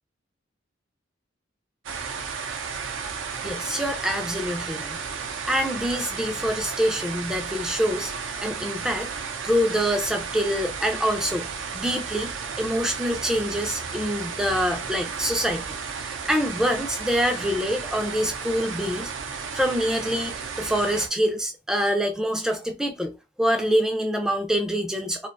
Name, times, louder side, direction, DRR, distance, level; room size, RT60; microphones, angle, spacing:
sound 1, 1.8-21.1, right 6 dB, 80° right, 0.5 m, -33 dB
voice 1, 3.4-5.0 5.4-9.1 9.4-11.5 11.7-12.3 12.6-19.1 19.5-25.3, equal, 5° right, 0.3 m, -26 dB
2.4 x 2.2 x 2.3 m
head